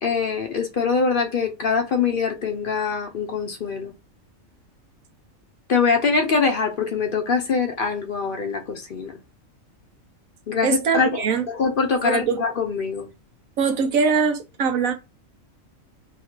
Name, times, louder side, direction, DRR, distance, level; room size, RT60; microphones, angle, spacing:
voice 1, 0.0-3.9 5.7-9.2 10.5-13.1, left 5 dB, 50° left, 0.7 m, -23 dB
voice 2, 10.6-11.5 12.0-12.4 13.6-14.9, right 5 dB, 85° right, 1.1 m, -22 dB
3.1 x 2.4 x 4.3 m
omnidirectional pair, 1.4 m